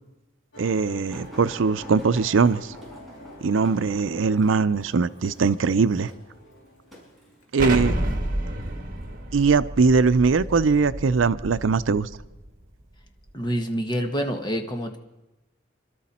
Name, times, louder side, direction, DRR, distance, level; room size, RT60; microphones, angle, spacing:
Musical instrument, 0.5-7.4, left 1 dB, 65° left, 2.4 m, -47 dB
voice 1, 0.6-2.8 3.4-6.1 7.5-7.9 9.3-12.1, right 4 dB, 85° right, 14 dB, 0.5 m, -21 dB
sound 1, 1.1-7.9 8.7-9.1 10.0-10.7 11.4-11.6 12.0-12.1, equal, ahead, 6.1 m, -46 dB
Explosion, 7.6-12.3, right 1 dB, 45° right, 1.7 m, -30 dB
voice 2, 13.3-15.0, equal, 25° left, 4 dB, 1.4 m, -27 dB
26.5 x 12.5 x 4.3 m, 1.0 s
head